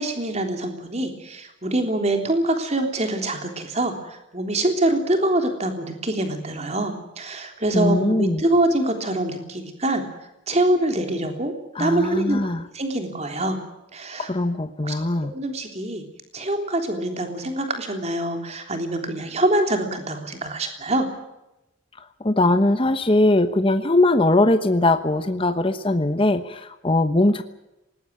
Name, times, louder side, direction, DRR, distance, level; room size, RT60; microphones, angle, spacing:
voice 1, 0.0-10.0 10.5-11.5 11.8-12.4 12.7-13.6 13.9-14.3 14.8-16.0 16.3-21.1, right 1 dB, 35° right, 5 dB, 3.5 m, -24 dB
voice 2, 7.7-8.4 11.7-12.6 14.2-15.3 22.2-27.4, left 2 dB, 25° left, 9 dB, 1.1 m, -20 dB
20.0 x 19.5 x 9.5 m, 0.91 s
head